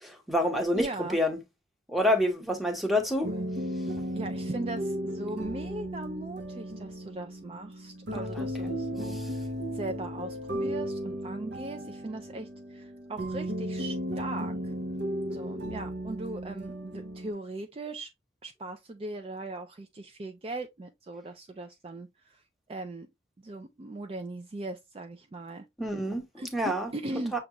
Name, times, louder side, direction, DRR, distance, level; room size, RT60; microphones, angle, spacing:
voice 1, 0.0-1.4 1.9-3.3 8.4-8.5 9.1-9.3 25.8-26.2 26.5-26.9 27.3-27.4, equal, ahead, 0.8 m, -27 dB
voice 2, 0.7-1.2 3.2-3.5 4.1-14.7 15.3-18.1 18.4-22.4 22.7-23.1 23.4-25.7 26.4-27.3, right 2 dB, 30° right, 0.3 m, -39 dB
sound 1, 3.2-17.3, equal, 65° right, 0.6 m, -35 dB
6.3 x 2.4 x 2.9 m
head